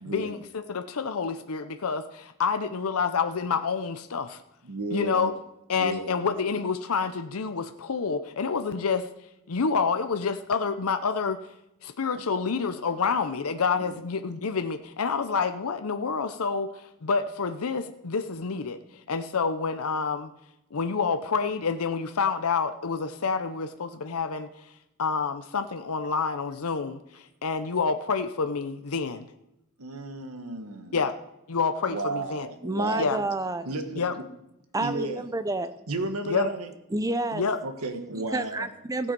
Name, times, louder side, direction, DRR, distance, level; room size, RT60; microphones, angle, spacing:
voice 1, 0.1-4.4 4.9-5.4 5.7-9.1 9.5-11.4 11.8-18.8 19.1-20.3 20.7-24.5 25.0-29.3 30.9-31.1 31.5-32.5 33.0-33.2 34.0-34.1 36.3-36.5 37.3-37.6, left 5 dB, 70° left, 9 dB, 0.7 m, -28 dB
voice 2, 4.6-5.3 5.8-6.1 13.9-14.0 29.8-31.0 31.9-33.2 33.6-34.0 34.8-35.2 35.9-36.7 37.6-38.7, right 2 dB, 75° right, 7 dB, 1.4 m, -33 dB
voice 3, 32.6-33.7 34.7-35.7 36.9-37.4 38.3-39.1, right 2 dB, 15° right, 11 dB, 0.6 m, -29 dB
15.5 x 8.4 x 5.3 m, 0.86 s
head